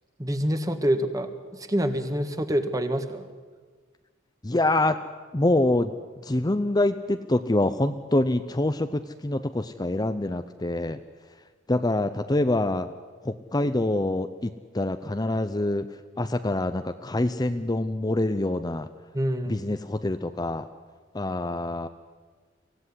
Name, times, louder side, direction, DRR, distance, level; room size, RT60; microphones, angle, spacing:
voice 1, 0.2-3.2 19.1-19.6, equal, 20° right, 7 dB, 1.7 m, -26 dB
voice 2, 4.4-5.0 5.3-5.9 6.2-11.0 11.7-12.9 13.2-18.9 19.5-20.7 21.1-21.9, left 2 dB, 20° left, 9 dB, 0.7 m, -25 dB
24.5 x 16.5 x 9.8 m, 1.4 s
head